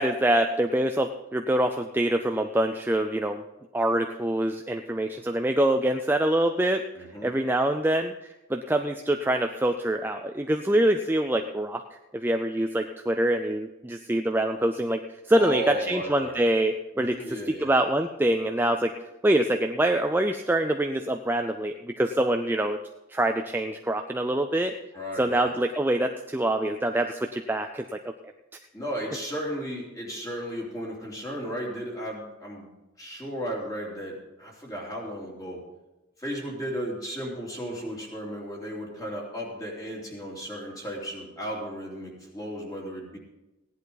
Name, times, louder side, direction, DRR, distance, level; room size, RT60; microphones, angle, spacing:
voice 1, 0.0-3.4 3.7-6.9 7.2-11.8 12.1-18.9 19.2-22.8 23.1-24.7 25.2-27.8, right 1 dB, 10° right, 5 dB, 0.4 m, -25 dB
voice 2, 7.0-7.3 15.3-16.3 16.9-17.7 24.9-25.5 28.7-32.7 33.0-35.6 36.2-43.2, equal, 15° left, -3 dB, 3.0 m, -35 dB
16.0 x 10.5 x 4.0 m, 1.0 s
head